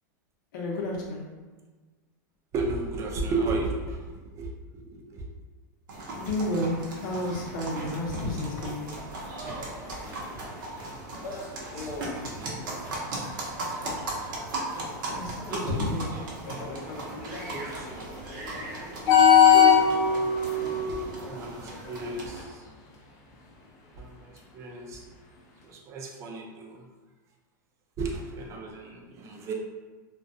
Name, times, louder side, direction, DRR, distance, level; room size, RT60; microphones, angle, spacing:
voice 1, 0.5-1.2 6.2-8.8 15.1-16.1, left 1 dB, 70° left, -2 dB, 0.7 m, -31 dB
voice 2, 2.5-4.5 4.9-5.2 11.6-12.6 14.3-14.4 15.5-15.8 16.1-16.6 17.4-18.2 18.5-18.8 21.2-22.6 24.0-25.0 25.6-26.8 28.0-29.5, right 3 dB, 30° right, 0 dB, 0.4 m, -34 dB
sound 1, 5.9-22.4, right 2 dB, 80° right, 0.7 m, -37 dB
sound 2, 9.1-15.6 16.4-22.0 22.4-22.7 24.4-24.5, left 7 dB, 35° left, 0.5 m, -24 dB
2.3 x 2.2 x 2.6 m, 1.3 s
supercardioid pair, 135°, 11 cm